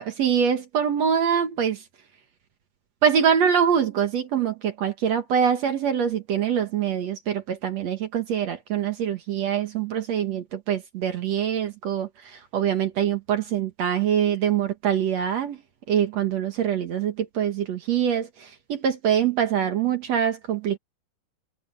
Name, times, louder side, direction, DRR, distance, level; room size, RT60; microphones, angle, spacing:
voice 1, 0.0-1.8 3.0-15.6 15.9-20.8, right 8 dB, 60° right, 2.1 m, -24 dB
omnidirectional pair, 4.2 m